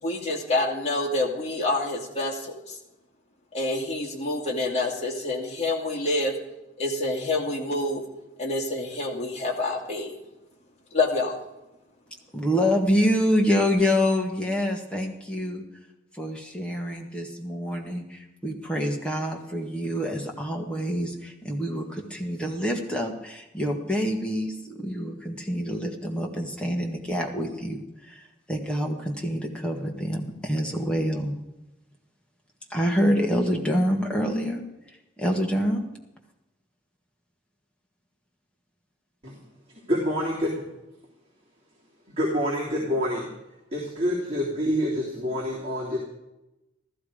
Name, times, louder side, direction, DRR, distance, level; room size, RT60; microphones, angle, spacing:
voice 1, 0.0-2.8 3.5-6.3 6.8-8.0 8.4-10.2 10.9-11.4, left 2 dB, 35° left, 0 dB, 2.5 m, -27 dB
voice 2, 12.3-15.6 16.1-31.3 32.7-34.6 34.9-35.9, equal, 5° left, 0 dB, 1.7 m, -26 dB
voice 3, 39.9-40.5 42.1-43.3 43.7-46.0, equal, 30° right, -6 dB, 3.3 m, -27 dB
14.5 x 14.0 x 5.1 m, 0.94 s
head